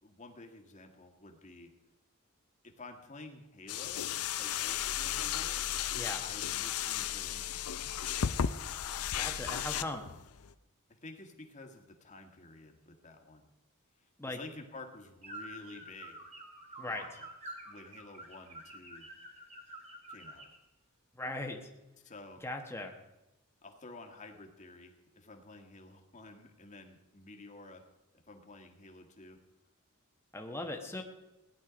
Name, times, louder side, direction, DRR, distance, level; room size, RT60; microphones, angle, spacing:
voice 1, 0.0-1.7 2.6-4.1 4.4-5.6 6.2-7.8 11.0-13.5 14.3-16.2 16.9-17.3 17.7-19.1 20.1-20.5 22.0-22.4 23.6-27.8 28.3-29.4, left 2 dB, 35° left, 4 dB, 1.8 m, -51 dB
sound 1, 3.7-10.5, left 9 dB, 80° left, 0.6 m, -35 dB
voice 2, 9.1-10.0 14.2-14.4 16.8-17.0 21.2-21.7 22.4-22.9 30.3-31.0, left 2 dB, 10° left, 2 dB, 1.3 m, -38 dB
sound 2, 15.2-20.6, right 1 dB, 30° right, 2.5 m, -48 dB
17.0 x 10.5 x 5.1 m, 0.97 s
head